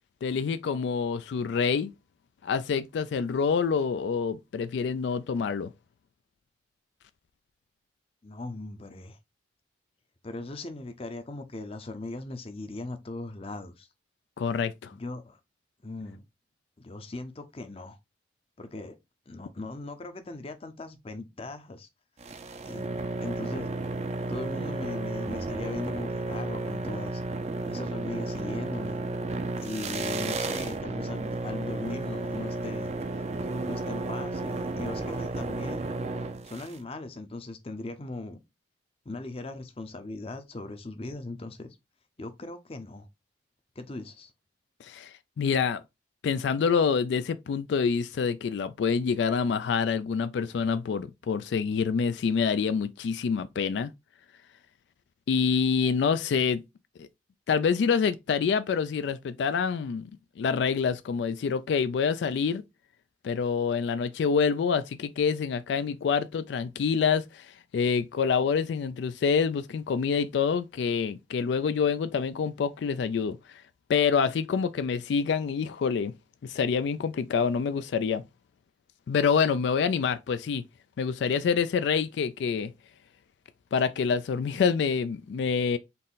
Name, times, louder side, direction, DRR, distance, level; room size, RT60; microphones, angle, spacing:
voice 1, 0.2-1.9 2.4-5.7 14.4-14.9 44.8-45.8 46.2-53.9 55.3-56.6 57.0-57.1 57.5-60.1 60.4-62.6 63.2-73.6 73.9-76.1 76.4-78.2 79.1-80.6 81.0-82.7 83.7-85.8, left 6 dB, 75° left, 0.3 m, -27 dB
voice 2, 8.2-9.2 10.2-13.9 14.9-15.4 15.8-16.2 16.8-18.0 18.6-19.0 19.3-21.9 22.7-22.9 23.2-23.7 24.3-27.2 27.7-29.0 29.6-32.9 33.6-35.9 36.4-38.4 39.1-41.7 42.2-43.1 43.8-44.3, left 2 dB, 30° left, 0.6 m, -39 dB
sound 1, 22.2-36.8, right 2 dB, 35° right, 0.4 m, -33 dB
4.1 x 2.6 x 3.6 m
head